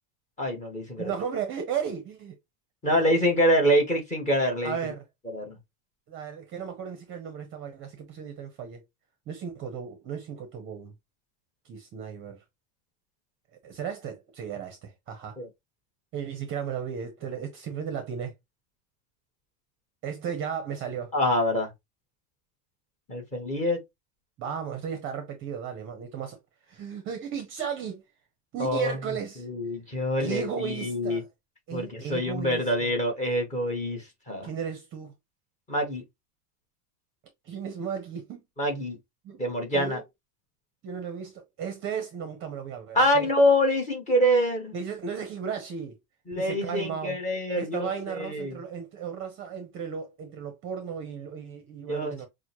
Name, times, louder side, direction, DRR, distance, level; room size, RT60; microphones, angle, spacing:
voice 1, 0.4-1.1 2.8-4.9 5.3-5.5 15.4-15.5 21.1-21.7 23.1-23.8 28.6-29.0 29.4-31.2 31.7-34.5 35.7-36.0 38.6-39.0 39.4-40.0 42.9-44.7 46.3-48.6 51.9-52.3, equal, 15° left, 1.3 m, -25 dB
voice 2, 1.0-2.3 2.9-3.0 4.6-5.0 6.1-8.8 9.3-10.9 11.6-12.4 13.6-15.4 16.1-18.3 20.0-21.1 24.4-26.4 26.7-28.0 28.5-29.4 30.2-31.3 31.7-32.9 34.4-35.1 37.4-38.4 39.2-39.4 39.7-40.0 40.8-43.3 44.7-46.0 46.4-47.2 47.5-52.3, right 7 dB, 25° right, 0.7 m, -35 dB
6.0 x 2.2 x 2.9 m
supercardioid pair, 165°, 45 cm